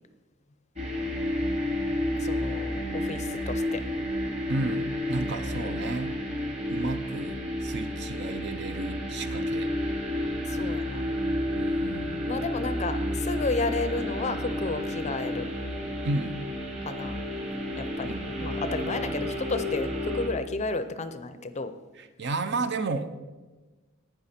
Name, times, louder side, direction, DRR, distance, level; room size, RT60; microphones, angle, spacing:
sound 1, 0.8-20.3, left 1 dB, 30° right, 2.2 m, -31 dB
voice 1, 2.2-3.8 10.4-11.1 12.3-15.5 16.8-17.2 17.8-18.1 18.4-21.7, left 3 dB, 30° left, 11 dB, 0.5 m, -32 dB
voice 2, 4.5-6.1 6.7-9.7 11.5-12.2 16.0-16.4 18.0-18.3 22.0-23.1, right 2 dB, 50° right, 10 dB, 0.7 m, -32 dB
11.5 x 8.9 x 4.3 m, 1.2 s
head